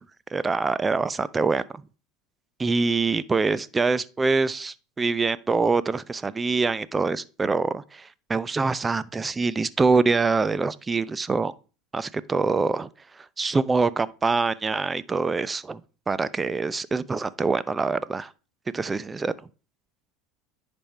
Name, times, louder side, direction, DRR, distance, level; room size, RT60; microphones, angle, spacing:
voice 1, 0.3-1.6 2.6-11.5 11.9-12.9 13.4-15.8 16.1-18.3 18.7-19.3, right 4 dB, 20° right, 0.6 m, -24 dB
10.0 x 5.3 x 4.5 m
hypercardioid pair, 90°, 0 cm